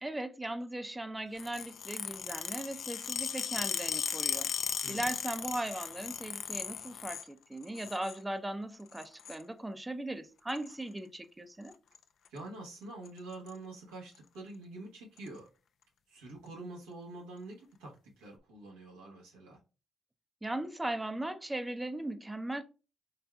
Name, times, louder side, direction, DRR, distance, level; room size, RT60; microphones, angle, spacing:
voice 1, 0.0-4.5 4.9-11.7 20.4-22.6, right 1 dB, 15° right, 0.6 m, -38 dB
sound 1, 1.4-7.3 7.6-8.2 8.9-9.4 10.5-10.7 11.7-12.0 12.3-12.4 12.7-12.8 13.1-13.5 14.1-14.2 15.2-15.3, left 8 dB, 65° left, 0.4 m, -37 dB
voice 2, 12.3-15.5 16.1-19.6, right 2 dB, 85° right, 1.1 m, -46 dB
4.0 x 3.3 x 2.3 m
hypercardioid pair, 45°, 0 cm